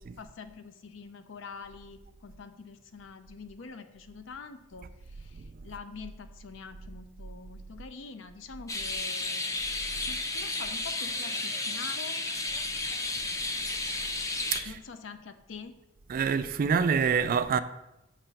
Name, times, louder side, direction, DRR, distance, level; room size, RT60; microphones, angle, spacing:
voice 1, 0.0-9.5 10.1-12.2 14.6-15.8, left 5 dB, 70° left, 0.5 m, -45 dB
sound 1, 8.7-14.6, left 2 dB, 15° left, 0.5 m, -32 dB
voice 2, 16.1-17.6, right 6 dB, 45° right, 0.3 m, -26 dB
6.8 x 3.0 x 5.7 m
head